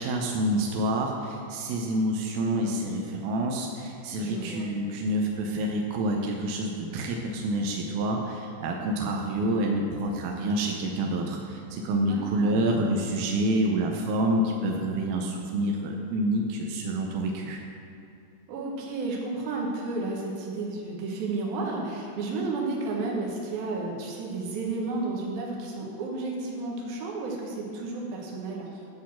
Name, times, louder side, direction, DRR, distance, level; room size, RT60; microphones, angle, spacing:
voice 1, 0.0-17.6, right 1 dB, 80° right, 1 dB, 2.1 m, -28 dB
voice 2, 4.2-4.7 12.1-12.8 18.5-28.7, right 3 dB, 65° right, -1 dB, 2.7 m, -32 dB
11.0 x 4.0 x 7.3 m, 2.7 s
omnidirectional pair, 5.2 m